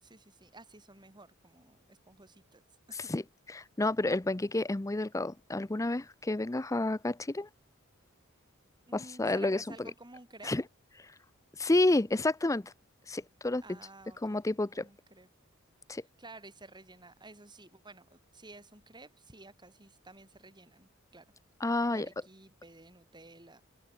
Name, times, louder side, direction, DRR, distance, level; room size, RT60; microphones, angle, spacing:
voice 1, 0.0-3.1 8.9-10.6 13.6-14.4 14.7-15.3 15.9-21.3 21.9-23.6, right 2 dB, 20° right, 6.4 m, -53 dB
voice 2, 3.5-7.5 8.9-9.6 10.4-10.6 11.6-12.7 13.1-13.8 14.2-14.9 15.9-16.0 21.6-22.1, left 2 dB, 15° left, 0.6 m, -30 dB
open air
head